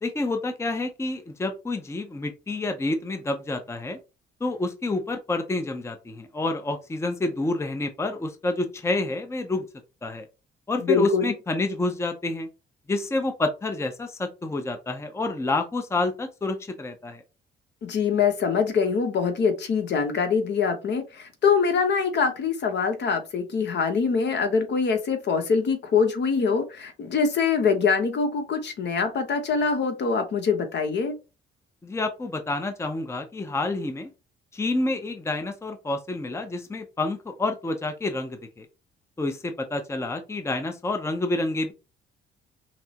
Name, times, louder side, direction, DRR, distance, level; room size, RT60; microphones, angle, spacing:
voice 1, 0.0-4.0 4.4-9.6 10.0-10.3 10.7-12.5 12.9-17.2 31.8-34.1 34.5-38.7 39.2-41.7, left 2 dB, 15° left, 7 dB, 0.6 m, -28 dB
voice 2, 10.8-11.3 17.8-31.1, left 5 dB, 60° left, 6 dB, 1.0 m, -24 dB
5.8 x 2.0 x 2.8 m, 0.29 s
cardioid pair, 90°, 20 cm